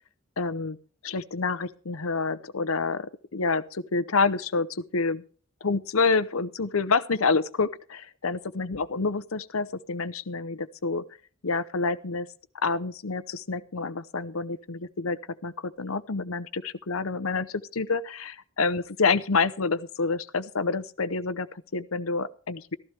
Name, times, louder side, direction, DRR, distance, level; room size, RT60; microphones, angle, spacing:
voice 1, 0.4-0.8 1.0-5.2 5.6-11.0 11.4-12.3 12.6-22.7, left 4 dB, 90° left, 15 dB, 0.8 m, -28 dB
15.0 x 14.0 x 3.4 m, 0.41 s
head